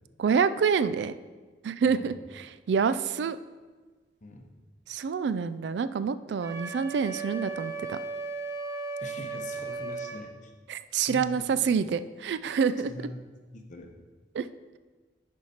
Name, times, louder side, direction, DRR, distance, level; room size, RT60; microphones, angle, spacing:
voice 1, 0.2-1.1 1.6-3.4 4.9-8.0 10.7-12.9 14.3-14.5, right 6 dB, 75° right, 14 dB, 0.3 m, -27 dB
voice 2, 1.9-2.2 4.2-4.4 9.0-10.5 10.9-11.7 12.9-13.2 13.5-13.9, left 1 dB, 45° left, 3 dB, 0.9 m, -43 dB
Wind instrument woodwind instrument, 6.4-10.2, right 4 dB, 15° right, 1.0 m, -36 dB
10.5 x 4.6 x 4.3 m, 1.3 s
head